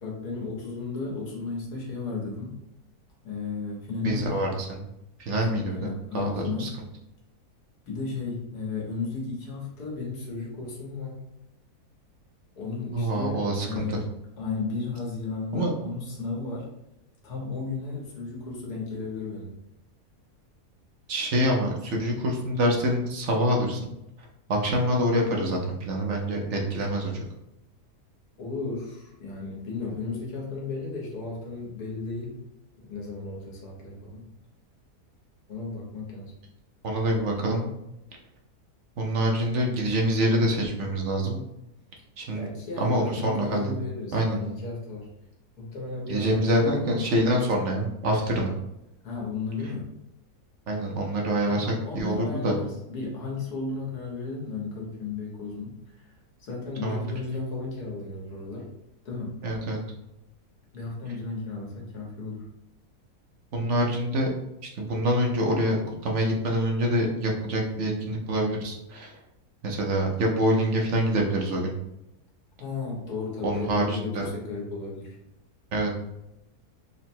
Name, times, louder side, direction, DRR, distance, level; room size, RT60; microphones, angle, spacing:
voice 1, 0.0-2.5 3.2-4.4 5.5-6.8 7.9-11.2 12.6-14.1 14.4-16.7 17.2-19.6 28.4-32.4 32.8-34.2 35.5-36.3 42.3-45.1 45.6-47.0 49.0-49.9 51.4-56.0 56.4-58.7 59.0-59.3 60.7-62.4 72.6-75.2, left 4 dB, 80° left, -2 dB, 1.7 m, -34 dB
voice 2, 4.0-4.8 5.2-5.8 6.1-6.7 12.9-14.0 15.5-15.7 21.1-23.9 24.5-27.1 36.8-37.7 39.0-41.4 42.2-42.5 42.8-43.7 44.1-44.4 46.1-48.5 50.7-52.5 56.8-57.1 59.4-59.8 63.5-64.3 64.8-69.1 69.6-71.7 73.4-74.3 75.7-75.9, right 1 dB, 60° right, 0 dB, 0.9 m, -26 dB
3.9 x 2.1 x 4.3 m, 0.87 s
omnidirectional pair, 1.7 m